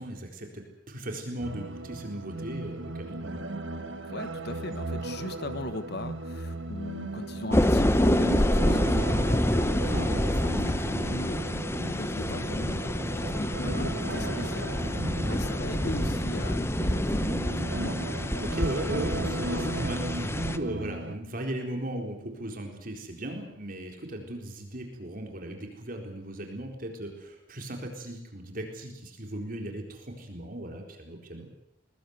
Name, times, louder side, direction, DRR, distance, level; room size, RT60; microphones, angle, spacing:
voice 1, 0.0-3.4 9.8-11.2 15.2-15.7 18.4-31.5, right 1 dB, 50° right, 2 dB, 4.1 m, -37 dB
sound 1, 1.4-21.1, right 2 dB, 90° right, 1.8 m, -36 dB
voice 2, 4.1-10.1 10.6-17.7, left 2 dB, 60° left, 11 dB, 1.3 m, -39 dB
sound 2, 7.5-20.6, left 1 dB, 15° left, 0.9 m, -27 dB
22.0 x 21.0 x 8.1 m, 0.82 s
head